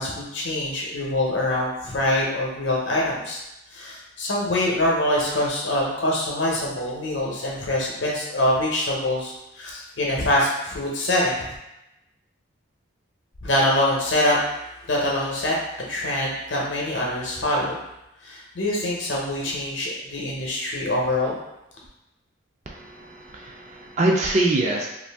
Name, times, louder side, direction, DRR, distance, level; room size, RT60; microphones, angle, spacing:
voice 1, 0.0-3.4 3.7-11.5 13.4-14.4 14.9-15.6 15.9-17.8 18.2-21.4, left 1 dB, 65° left, -3 dB, 0.7 m, -24 dB
voice 2, 22.7-24.9, right 2 dB, 35° right, 0 dB, 0.3 m, -24 dB
2.5 x 2.5 x 3.4 m, 0.90 s
head